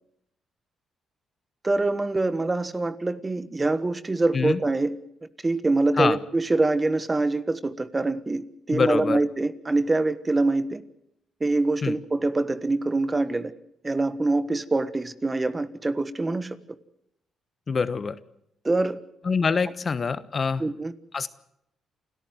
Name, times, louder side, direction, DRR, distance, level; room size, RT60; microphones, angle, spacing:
voice 1, 1.6-5.0 5.4-10.8 11.4-13.5 13.8-16.6 18.6-19.0 20.6-20.9, right 2 dB, 25° right, 1.5 m, -25 dB
voice 2, 8.7-9.2 11.8-11.9 17.7-18.2 19.2-20.6 21.1-21.3, left 5 dB, 45° left, 1.1 m, -25 dB
28.5 x 13.5 x 7.8 m
supercardioid pair, 60°, 0 cm